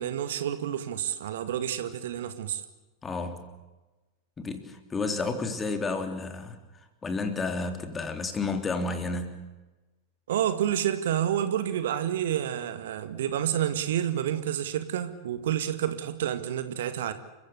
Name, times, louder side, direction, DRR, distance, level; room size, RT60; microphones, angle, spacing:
voice 1, 0.0-2.6 10.3-17.1, right 10 dB, 60° right, 11 dB, 1.9 m, -29 dB
voice 2, 3.0-3.5 4.4-6.6 7.0-9.4, left 3 dB, 15° left, 8 dB, 3.4 m, -31 dB
29.5 x 16.0 x 8.2 m, 1.1 s
figure-of-eight pair, 90°, 0 cm